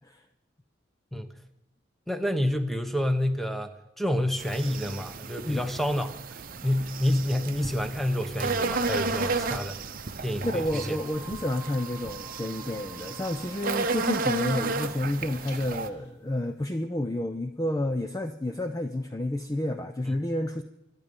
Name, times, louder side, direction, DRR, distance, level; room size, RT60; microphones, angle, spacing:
voice 1, 2.1-6.2 6.6-9.8 10.2-11.0 20.1-20.2, left 1 dB, ahead, 8 dB, 1.0 m, -28 dB
sound 1, 4.4-15.9, right 4 dB, 40° right, 0.8 m, -33 dB
voice 2, 10.4-20.6, left 1 dB, 15° left, 7 dB, 0.5 m, -30 dB
sound 2, 10.7-16.1, right 1 dB, 55° left, 4.3 m, -49 dB
25.0 x 9.9 x 5.3 m, 0.91 s
head